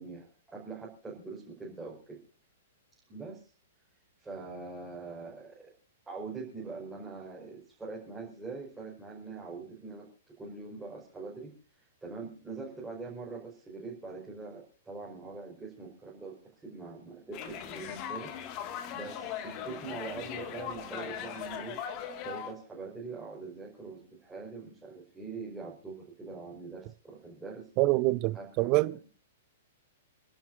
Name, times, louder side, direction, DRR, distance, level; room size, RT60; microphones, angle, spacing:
voice 1, 0.0-2.2 3.1-3.5 4.2-5.7 6.1-21.8 22.2-27.7 28.3-28.8, right 4 dB, 10° right, 5.4 m, -43 dB
sound 1, 17.3-22.5, left 9 dB, 35° left, 2.3 m, -39 dB
voice 2, 27.8-29.1, right 20 dB, 35° right, 0.7 m, -26 dB
29.0 x 12.0 x 2.8 m
figure-of-eight pair, 110°, 0 cm